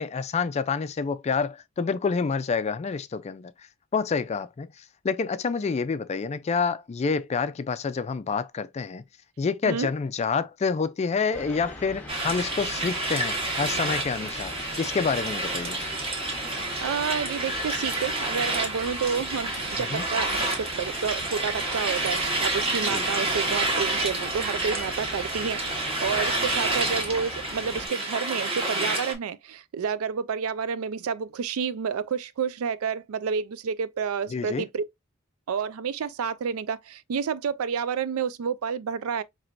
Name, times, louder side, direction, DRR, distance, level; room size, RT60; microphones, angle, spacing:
voice 1, 0.0-3.7 3.9-9.0 9.4-15.8 19.8-20.0 22.9-23.1 34.3-34.7, left 5 dB, 30° left, 0.3 m, -28 dB
sound 1, 11.3-27.9, left 2 dB, 10° left, 0.8 m, -42 dB
sound 2, 12.1-29.1, right 2 dB, 25° right, 1.0 m, -29 dB
voice 2, 16.8-34.8 35.5-39.2, right 6 dB, 85° right, 0.4 m, -30 dB
4.4 x 3.0 x 2.5 m
head